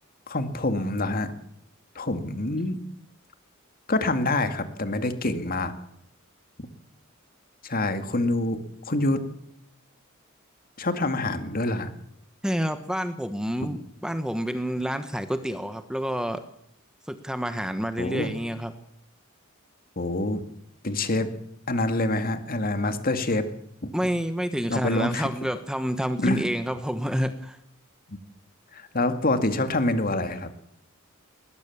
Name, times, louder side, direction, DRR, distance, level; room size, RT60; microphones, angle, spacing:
voice 1, 0.3-1.3 2.0-2.8 3.9-5.7 7.6-8.6 8.9-9.2 10.8-11.9 18.0-18.3 20.0-20.4 20.8-21.3 21.7-23.5 23.8-23.9 24.7-25.3 26.2-26.5 28.1-28.2 28.7-30.5, left 2 dB, 45° left, 9 dB, 2.2 m, -26 dB
voice 2, 12.4-16.4 17.1-18.7 23.9-27.6, equal, 5° right, 9 dB, 1.2 m, -28 dB
21.0 x 19.5 x 7.3 m, 0.75 s
head